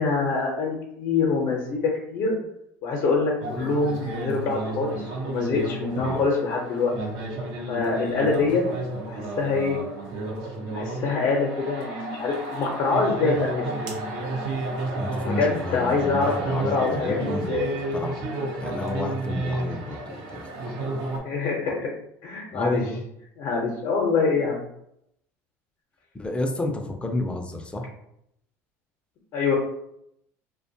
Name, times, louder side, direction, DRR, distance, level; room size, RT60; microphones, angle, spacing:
voice 1, 0.0-1.8 2.1-2.4 2.8-6.9 7.7-8.6 9.1-9.8 10.6-13.7 15.2-16.3 16.6-17.7 21.2-21.9 22.2-22.8 23.4-24.6 29.3-29.6, left 4 dB, 55° left, -2 dB, 0.6 m, -25 dB
sound 1, 3.4-21.2, right 2 dB, 65° right, 0.7 m, -32 dB
voice 2, 15.0-17.6 17.9-18.2 18.6-20.7 22.5-23.0 26.1-27.9, left 2 dB, 15° left, 3 dB, 0.5 m, -31 dB
2.4 x 2.2 x 2.7 m, 0.78 s
supercardioid pair, 90°, 7 cm